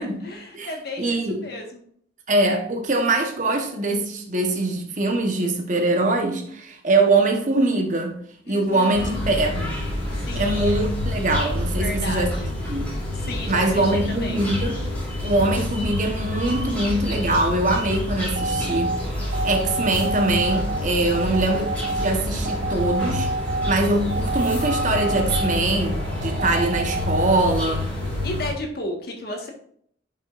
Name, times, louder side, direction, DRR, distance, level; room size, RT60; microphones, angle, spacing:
voice 1, 0.2-1.8 8.5-9.2 10.1-10.8 11.8-12.5 13.1-14.4 21.0-21.6 28.2-29.5, left 1 dB, 55° left, 1.6 m, -34 dB
voice 2, 1.0-1.4 2.3-8.2 8.5-9.7 10.3-12.3 12.7-12.9 13.5-14.8 15.2-27.9, right 2 dB, 40° right, 1.2 m, -23 dB
sound 1, 8.9-28.5, left 1 dB, 10° left, 3.1 m, -28 dB
sound 2, 18.4-27.6, right 3 dB, 75° right, 2.4 m, -29 dB
11.0 x 5.4 x 2.6 m
head